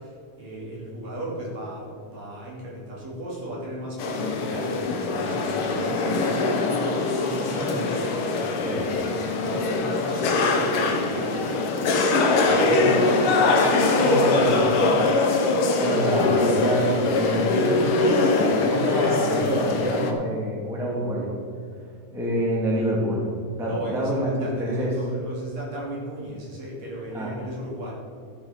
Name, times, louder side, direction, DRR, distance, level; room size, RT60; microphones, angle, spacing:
voice 1, 0.0-6.9 7.1-8.6 9.0-11.9 12.2-14.7 23.6-27.9, right 1 dB, 55° right, -5 dB, 3.9 m, -36 dB
sound 1, 4.0-20.1, left 3 dB, 80° left, 1.2 m, -22 dB
voice 2, 12.7-13.3 14.0-14.7 15.8-21.3 22.1-23.3 23.5-24.9 27.1-27.3, right 1 dB, ahead, -4 dB, 1.7 m, -27 dB
13.0 x 7.4 x 5.1 m, 2.4 s
omnidirectional pair, 3.8 m